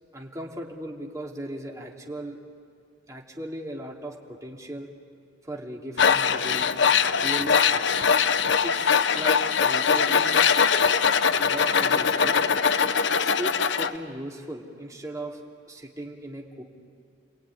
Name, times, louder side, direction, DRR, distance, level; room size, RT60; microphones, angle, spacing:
voice 1, 0.1-2.4 3.1-4.9 5.4-6.7 7.2-8.1 8.6-10.4 11.4-12.4 13.1-15.4 15.7-16.6, right 1 dB, 20° right, -1 dB, 3.0 m, -37 dB
Tools, 6.0-13.9, left 6 dB, 75° left, 0.8 m, -22 dB
29.5 x 20.5 x 9.9 m, 2.2 s
head